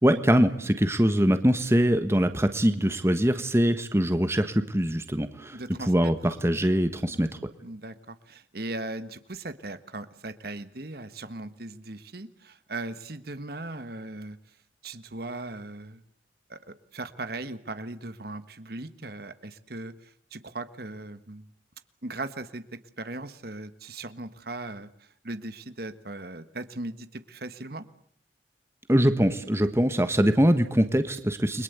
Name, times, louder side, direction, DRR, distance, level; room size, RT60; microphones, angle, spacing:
voice 1, 0.0-5.6 5.9-7.3 28.9-31.6, equal, 15° right, 9 dB, 1.3 m, -23 dB
voice 2, 5.5-6.1 7.0-7.2 7.6-14.4 14.8-16.0 16.5-21.5 22.0-22.6 23.0-27.8, right 2 dB, 55° right, 11 dB, 1.5 m, -38 dB
29.5 x 22.5 x 8.2 m, 0.65 s
head